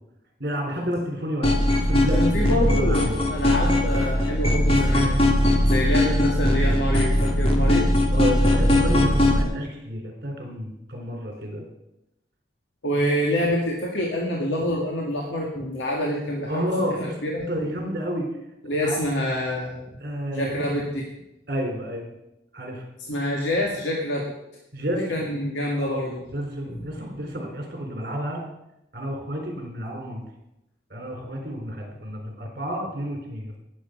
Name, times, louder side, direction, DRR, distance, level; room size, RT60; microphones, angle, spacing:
voice 1, 0.4-3.1 8.1-11.6 16.5-17.2 17.5-18.3 18.8-19.0 20.0-20.5 21.5-22.1 22.5-22.9 24.7-25.4 25.7-28.4 28.9-30.2 30.9-33.5, equal, 55° right, 1 dB, 3.9 m, -30 dB
sound 1, 1.4-9.4, left 1 dB, 30° left, 1.5 m, -20 dB
voice 2, 2.1-5.1 5.6-7.9 12.8-17.5 18.6-19.8 20.3-21.1 23.1-24.3 24.9-26.2 26.7-26.8, equal, 80° left, -2 dB, 2.0 m, -26 dB
18.5 x 7.5 x 5.1 m, 0.88 s
head